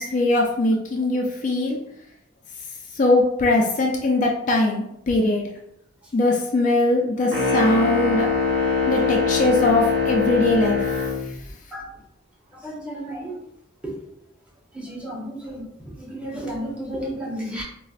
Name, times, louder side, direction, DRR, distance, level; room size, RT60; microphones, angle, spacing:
voice 1, 0.0-1.8 3.0-5.4 6.1-8.3 8.9-10.8, left 2 dB, 40° left, 0 dB, 0.3 m, -21 dB
sound 1, 7.3-11.2, left 4 dB, 30° right, 1.0 m, -22 dB
voice 2, 12.6-13.4 13.8-13.9 14.7-15.6 16.0-17.6, right 1 dB, 5° right, -4 dB, 0.7 m, -32 dB
4.0 x 2.0 x 2.4 m, 0.77 s
head